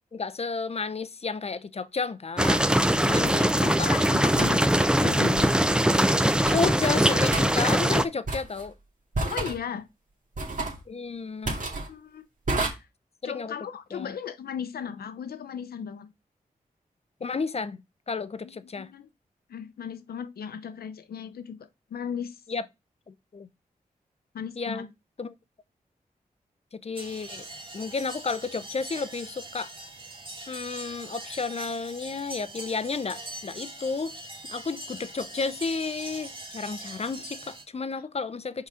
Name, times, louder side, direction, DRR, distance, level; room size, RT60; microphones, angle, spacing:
voice 1, 0.1-2.7 3.0-3.9 4.2-4.5 6.5-8.7 10.9-11.6 13.2-13.5 13.9-14.2 17.2-18.9 22.5-22.6 23.1-23.5 24.6-24.9 25.2-25.3 26.7-27.4 27.7-29.7 30.5-34.1 34.4-38.7, left 4 dB, 40° left, 0.6 m, -32 dB
sound 1, 2.4-8.0, right 1 dB, 5° right, 0.6 m, -22 dB
sound 2, 2.7-2.8 4.4-4.6 5.4-5.6 6.5-6.8 7.3-7.5 8.3-8.7 9.1-9.6 10.4-10.8 11.5-11.9 12.5-12.7, right 2 dB, 55° right, 2.0 m, -30 dB
voice 2, 3.4-5.5 9.3-9.9 11.9-12.3 12.5-12.9 13.2-16.1 18.4-19.1 19.5-22.4 24.3-24.9, left 7 dB, 85° left, 0.7 m, -36 dB
sound 3, 27.0-37.6, right 1 dB, 35° right, 1.8 m, -42 dB
5.4 x 3.9 x 4.9 m
cardioid pair, 45°, 16 cm